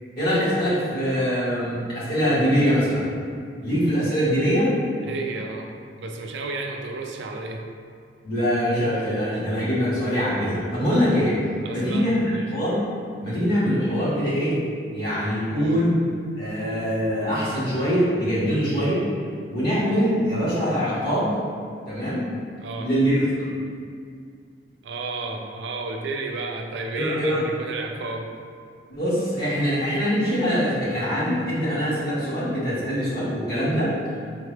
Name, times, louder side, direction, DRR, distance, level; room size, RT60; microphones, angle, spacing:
voice 1, 0.2-3.0 3.6-4.7 8.2-11.4 11.7-12.2 12.5-12.8 13.2-14.6 14.9-15.9 16.4-19.0 19.5-21.3 21.9-22.2 22.8-23.4 26.9-27.4 28.9-33.9, equal, 60° left, -11 dB, 1.4 m, -23 dB
voice 2, 5.0-5.7 6.0-7.6 11.6-12.5 15.5-15.8 22.6-22.9 24.8-28.3, right 3 dB, 75° right, 2 dB, 0.4 m, -32 dB
3.5 x 2.3 x 3.2 m, 2.2 s
head